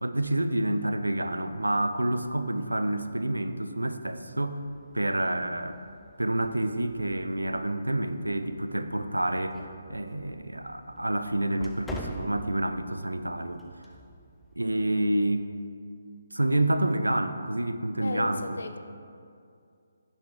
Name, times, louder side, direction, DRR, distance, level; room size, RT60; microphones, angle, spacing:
voice 1, 0.0-4.6 4.9-5.8 6.2-9.6 9.9-13.6 14.6-15.4 16.3-18.6, right 1 dB, 90° right, 9 dB, 0.4 m, -28 dB
sound 1, 4.6-15.4, equal, 5° left, 0.4 m, -47 dB
voice 2, 18.0-18.8, left 3 dB, 70° left, 8 dB, 0.4 m, -35 dB
6.0 x 5.8 x 3.2 m, 2.4 s
figure-of-eight pair, 145°, 0 cm